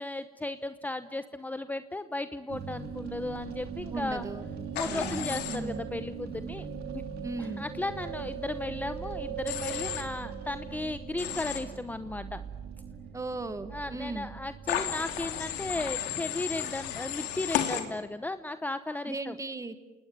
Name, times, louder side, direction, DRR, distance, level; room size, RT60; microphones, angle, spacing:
voice 1, 0.0-4.3 4.7-6.7 6.9-7.0 7.4-12.4 13.7-19.4, left 2 dB, 10° left, 10 dB, 0.9 m, -35 dB
sound 1, 2.5-16.0, right 6 dB, 70° right, 2.8 m, -40 dB
voice 2, 3.9-4.4 4.8-5.2 5.5-5.8 7.2-7.7 13.1-14.3 19.0-19.8, right 2 dB, 20° right, 11 dB, 1.9 m, -37 dB
Human voice / Train, 4.7-5.6 9.5-10.0 11.2-11.6 14.7-17.8, left 10 dB, 90° left, 3.0 m, -33 dB
27.5 x 19.5 x 9.4 m, 1.2 s
cardioid pair, 110°, 17 cm